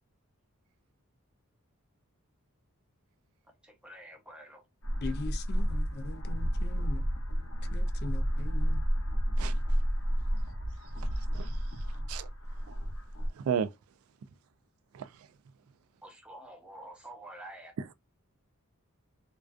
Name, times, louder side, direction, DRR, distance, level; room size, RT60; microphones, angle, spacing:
voice 1, 3.6-4.6 16.0-17.7, right 1 dB, 5° right, 0.5 m, -48 dB
sound 1, 4.8-13.3, equal, 75° left, 0.8 m, -31 dB
voice 2, 5.0-7.0 7.7-8.8, left 3 dB, 45° left, 0.3 m, -41 dB
voice 3, 13.3-13.7 14.9-15.3, right 7 dB, 70° right, 0.3 m, -33 dB
2.4 x 2.2 x 2.4 m
head